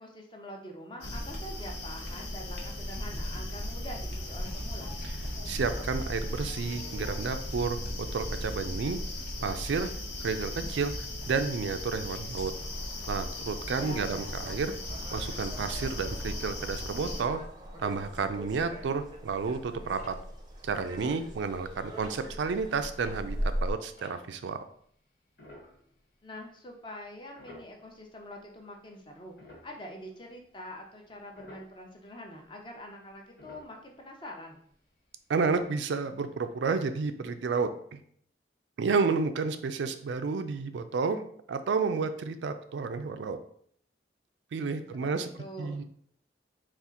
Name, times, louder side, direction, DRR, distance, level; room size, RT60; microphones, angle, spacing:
voice 1, 0.0-4.9 13.7-14.4 26.2-29.3 29.6-34.6 44.9-45.8, equal, 25° left, 1 dB, 0.6 m, -45 dB
sound 1, 1.0-17.2, left 1 dB, 80° left, 0.9 m, -37 dB
voice 2, 5.5-7.8 8.1-9.0 9.4-9.9 10.2-10.9 11.3-12.5 13.1-14.7 15.1-17.4 17.8-20.1 20.6-24.6 35.3-38.0 38.8-41.2 41.5-43.4 44.5-45.3 45.6-45.8, right 5 dB, 80° right, 9 dB, 0.4 m, -31 dB
sound 2, 12.5-23.7, equal, 25° right, 0.5 m, -40 dB
sound 3, 19.4-24.6 25.3-26.3 26.7-26.8 27.3-28.6 29.0-31.9 32.3-32.8 33.1-35.1 35.3-36.1 36.5-36.6 36.8-37.0 37.4-37.5, equal, 55° left, 1.2 m, -53 dB
4.2 x 2.4 x 3.7 m, 0.62 s
head